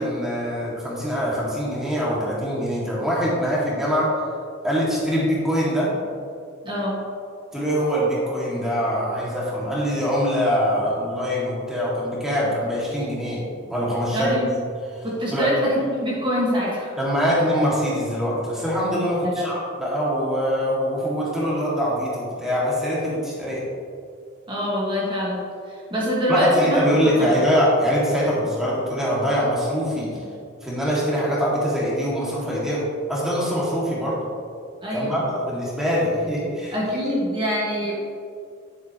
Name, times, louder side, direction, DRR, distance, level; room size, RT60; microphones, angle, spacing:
voice 1, 0.0-4.1 4.6-5.9 7.5-13.4 13.7-14.6 15.0-15.1 15.3-15.5 17.0-23.6 26.3-30.2 30.6-32.8 33.1-34.3 34.9-36.7 37.0-37.1, equal, ahead, -7 dB, 2.0 m, -23 dB
voice 2, 6.6-7.0 14.1-14.5 15.0-17.0 19.2-19.5 24.5-26.8 27.2-27.4 34.8-35.1 36.7-37.9, equal, 25° right, -6 dB, 1.6 m, -24 dB
10.5 x 7.8 x 3.0 m, 2.3 s
head